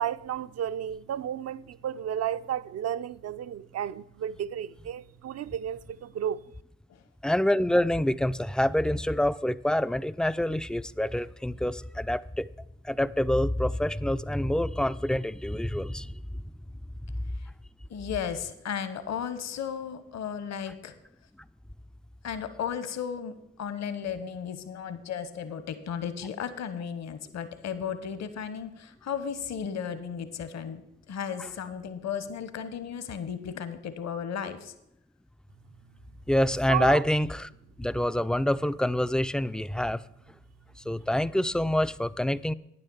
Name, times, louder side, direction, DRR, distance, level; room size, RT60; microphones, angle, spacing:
voice 1, 0.0-6.5 36.7-37.0, right 10 dB, 50° right, 0.5 m, -32 dB
voice 2, 7.2-12.5 12.8-16.2 36.3-37.5 37.8-40.0 40.9-42.5, left 1 dB, ahead, 0.4 m, -26 dB
voice 3, 17.9-20.9 22.2-34.7, left 7 dB, 55° left, 1.1 m, -35 dB
9.6 x 6.8 x 7.0 m
hypercardioid pair, 40°, 32 cm